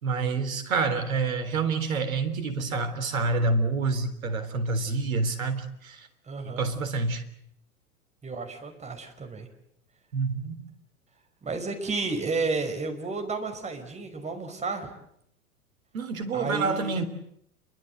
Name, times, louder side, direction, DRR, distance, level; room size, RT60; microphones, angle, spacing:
voice 1, 0.0-6.0 6.6-7.2 10.1-10.6 15.9-17.1, right 3 dB, 65° right, 9 dB, 3.7 m, -27 dB
voice 2, 6.3-6.7 8.2-9.5 11.4-14.9 16.3-17.1, right 3 dB, 15° right, 5 dB, 5.3 m, -32 dB
28.5 x 23.5 x 8.0 m, 0.72 s
figure-of-eight pair, 90°, 45 cm